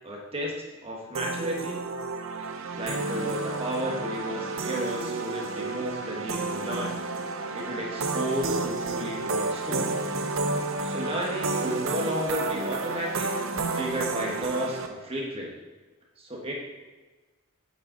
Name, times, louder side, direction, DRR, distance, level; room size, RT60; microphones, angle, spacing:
voice 1, 0.0-0.5 0.8-1.8 2.7-7.0 7.5-9.9 10.8-13.4 13.7-15.5 16.2-16.5, equal, 25° right, -2 dB, 1.4 m, -33 dB
sound 1, 1.1-14.9, right 3 dB, 65° right, 0.7 m, -31 dB
8.0 x 7.6 x 4.0 m, 1.3 s
head